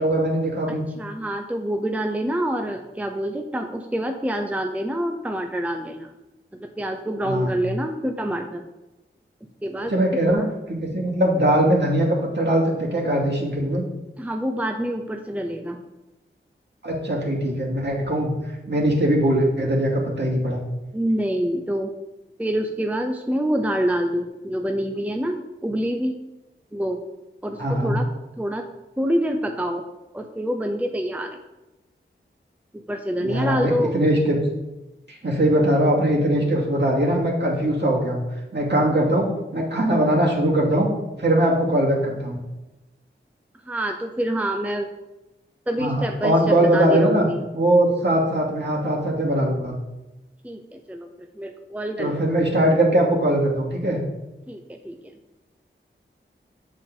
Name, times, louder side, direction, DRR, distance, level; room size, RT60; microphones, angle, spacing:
voice 1, 0.0-0.9 7.2-7.6 9.9-10.4 10.7-13.9 16.8-18.4 18.7-20.6 27.6-28.0 33.2-34.4 35.1-38.2 38.5-40.9 41.2-42.4 45.8-47.3 47.5-49.7 52.0-54.0, right 1 dB, 55° right, -3 dB, 2.4 m, -21 dB
voice 2, 0.7-6.1 6.5-8.6 9.6-10.0 10.3-10.5 14.2-15.8 20.9-21.9 22.4-26.2 26.7-27.0 27.4-28.1 28.4-28.7 29.0-29.8 30.1-31.4 32.7-34.0 43.6-44.9 45.7-47.4 50.4-52.4 54.5-55.1, equal, 5° right, 4 dB, 0.7 m, -26 dB
7.4 x 7.2 x 3.8 m, 1.0 s
wide cardioid pair, 55°, 21 cm